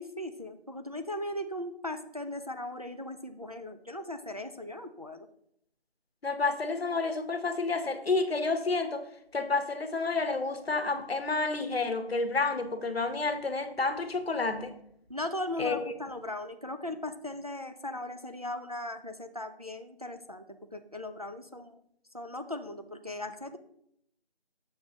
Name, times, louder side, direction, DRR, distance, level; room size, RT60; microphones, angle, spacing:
voice 1, 0.0-5.3 15.1-20.5 20.7-21.8 22.1-23.6, left 1 dB, 40° right, 7 dB, 0.4 m, -38 dB
voice 2, 6.2-9.1 9.3-14.7 15.6-15.9, left 3 dB, 75° left, 8 dB, 1.0 m, -30 dB
7.2 x 6.3 x 2.9 m, 0.72 s
figure-of-eight pair, 175°, 31 cm